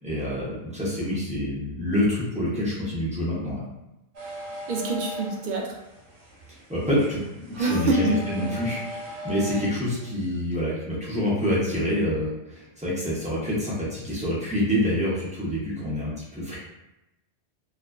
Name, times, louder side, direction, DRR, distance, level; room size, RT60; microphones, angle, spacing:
voice 1, 0.0-3.6 6.7-16.6, left 1 dB, 10° right, -8 dB, 0.6 m, -27 dB
sound 1, 4.1-10.1, equal, 80° right, 0.9 m, -38 dB
voice 2, 4.7-5.8 7.6-8.1 8.4-8.6, right 2 dB, 60° right, -1 dB, 0.6 m, -26 dB
2.4 x 2.3 x 2.2 m, 0.92 s
omnidirectional pair, 1.1 m